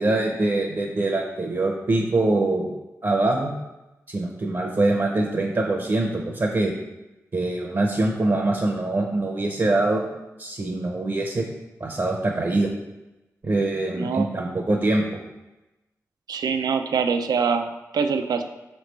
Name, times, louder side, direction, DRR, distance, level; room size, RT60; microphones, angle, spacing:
voice 1, 0.0-2.7 3.0-3.5 4.1-6.7 7.3-10.0 10.4-11.5 11.8-12.7 13.4-15.0, right 2 dB, 45° right, 0 dB, 0.7 m, -23 dB
voice 2, 13.9-14.3 16.3-18.4, right 5 dB, 80° right, 7 dB, 0.4 m, -24 dB
4.9 x 3.2 x 3.2 m, 1.0 s
cardioid pair, 40°, 7 cm